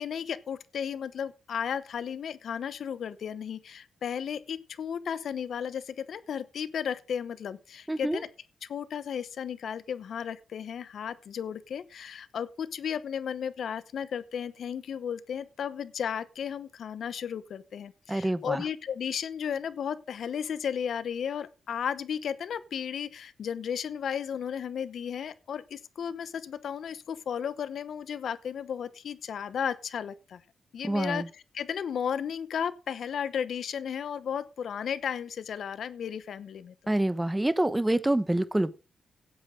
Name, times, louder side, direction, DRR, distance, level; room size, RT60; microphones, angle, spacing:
voice 1, 0.0-8.3 8.6-30.4 30.7-31.2 31.5-36.7, left 8 dB, 70° left, 0.8 m, -34 dB
voice 2, 7.9-8.2 18.1-18.6 30.8-31.3 36.9-38.8, right 1 dB, 15° right, 1.2 m, -27 dB
17.0 x 8.1 x 3.8 m
supercardioid pair, 55°, 0 cm